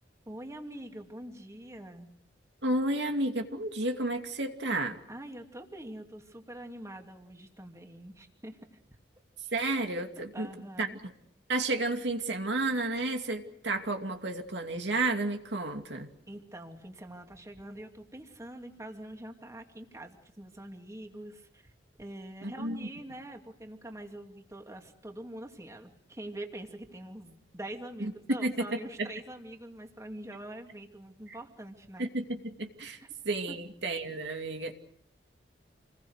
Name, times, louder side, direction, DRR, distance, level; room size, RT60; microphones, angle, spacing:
voice 1, 0.3-2.1 5.1-8.8 10.3-11.0 16.3-21.7 22.0-32.1 33.0-33.1 33.5-33.6, right 1 dB, 15° right, 3 dB, 2.8 m, -44 dB
voice 2, 2.6-5.0 9.5-10.5 10.8-11.1 11.5-16.1 22.4-22.9 28.0-28.1 28.4-29.1 32.0-33.0 33.2-34.7, right 2 dB, 70° right, 4 dB, 2.7 m, -32 dB
29.0 x 21.0 x 6.6 m, 0.70 s
head